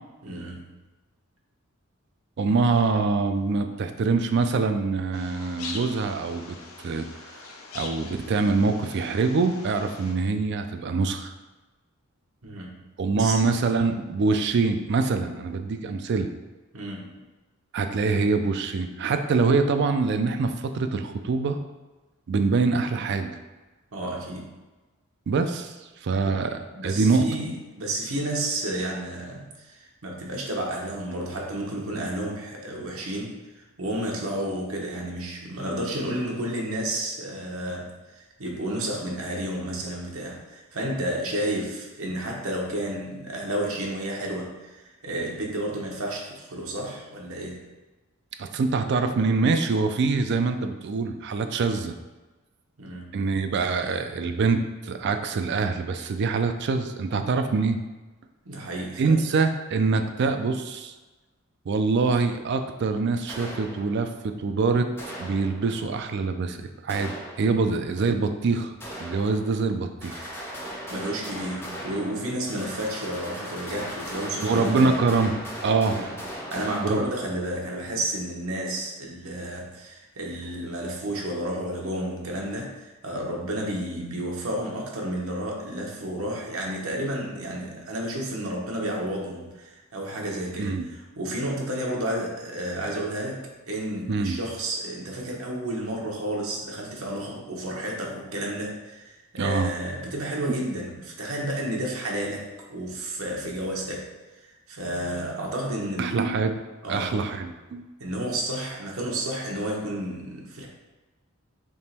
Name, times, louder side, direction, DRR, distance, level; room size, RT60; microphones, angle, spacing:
voice 1, 0.2-0.7 12.4-12.8 13.2-13.3 16.7-17.2 23.9-24.5 26.2-26.4 26.8-33.3 33.8-47.6 52.8-53.3 58.4-59.2 70.9-75.0 76.0-76.1 76.5-104.1 104.4-106.3 106.8-107.2 108.0-110.7, right 1 dB, 80° right, -1 dB, 0.9 m, -31 dB
voice 2, 2.4-7.1 7.7-11.3 13.0-16.3 17.7-21.6 22.3-23.3 25.3-25.8 26.0-27.2 48.4-51.9 53.1-57.8 59.0-60.9 61.7-64.9 65.2-68.7 69.0-70.3 74.4-76.0 76.8-77.1 90.6-90.9 94.1-94.4 99.4-99.7 106.0-106.6 106.9-107.9, right 4 dB, 55° right, 7 dB, 0.3 m, -24 dB
sound 1, 5.1-10.1, left 4 dB, 85° left, 0.6 m, -42 dB
sound 2, 63.3-64.3 65.0-66.0 66.9-67.9 68.8-69.7 70.0-77.5, equal, 10° left, 0.7 m, -38 dB
3.6 x 2.9 x 4.2 m, 1.2 s
head